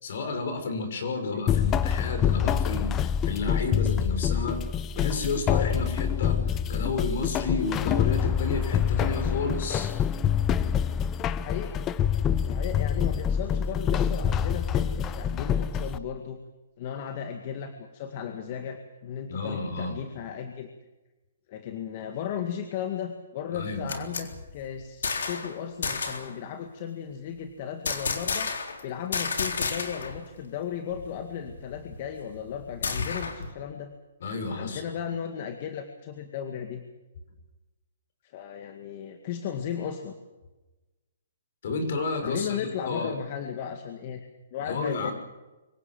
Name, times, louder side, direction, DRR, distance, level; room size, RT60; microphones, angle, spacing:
voice 1, 0.0-4.6 4.9-9.9 19.3-20.0 23.5-24.0 34.2-34.8 41.6-43.2 44.6-45.1, left 3 dB, 60° left, 6 dB, 6.3 m, -31 dB
sound 1, 1.5-16.0, left 8 dB, 20° left, 0.7 m, -26 dB
voice 2, 11.3-11.8 12.5-16.4 16.8-20.7 21.5-28.5 28.8-33.9 34.5-36.8 38.2-40.2 42.2-45.1, left 8 dB, 40° left, 6 dB, 2.0 m, -35 dB
sound 2, 23.6-25.5 25.8-26.3 27.8-28.8 29.1-30.2 30.5-30.6 30.9-33.5, left 5 dB, 85° left, 3.9 m, -32 dB
24.5 x 17.0 x 7.8 m, 1.1 s
hypercardioid pair, 155°, 0 cm